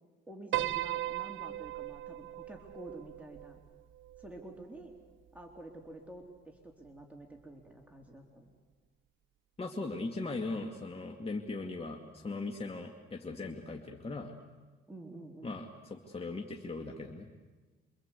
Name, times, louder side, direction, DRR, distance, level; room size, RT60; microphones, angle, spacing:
voice 1, 0.3-3.6 4.2-4.9 5.3-8.5 14.9-15.6, right 1 dB, 5° right, 0 dB, 3.5 m, -49 dB
Piano, 0.5-4.9, right 14 dB, 75° right, 0.8 m, -38 dB
voice 2, 9.6-14.3 15.4-17.3, left 3 dB, 30° left, 2 dB, 2.3 m, -39 dB
28.0 x 25.0 x 8.4 m, 1.3 s
cardioid pair, 90°, 20 cm